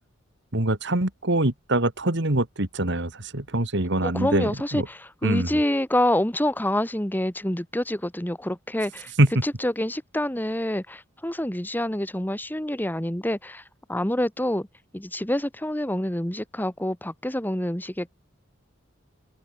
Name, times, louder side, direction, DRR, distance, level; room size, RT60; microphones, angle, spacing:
voice 1, 0.5-4.9 5.2-5.5 9.2-9.4, right 1 dB, 60° right, 2.6 m, -24 dB
voice 2, 4.0-9.1 9.4-13.6 13.9-14.7 14.9-18.1, left 1 dB, 10° left, 1.5 m, -27 dB
open air
head